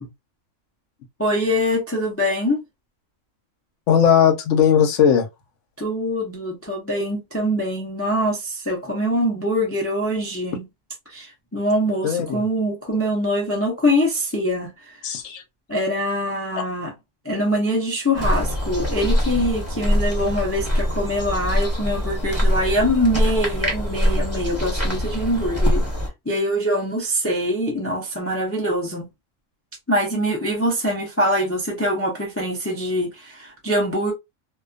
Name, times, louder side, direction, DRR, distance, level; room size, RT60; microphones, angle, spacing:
voice 1, 1.2-2.6 5.8-10.6 11.1-15.0 15.7-16.9 17.2-25.9 26.3-29.1 29.9-34.1, equal, 20° left, 0.4 m, -23 dB
voice 2, 3.9-5.3 12.0-12.4 15.0-15.4, left 8 dB, 75° left, 1.0 m, -17 dB
sound 1, 18.1-26.1, equal, 15° right, 0.9 m, -23 dB
2.3 x 2.2 x 2.4 m
omnidirectional pair, 1.3 m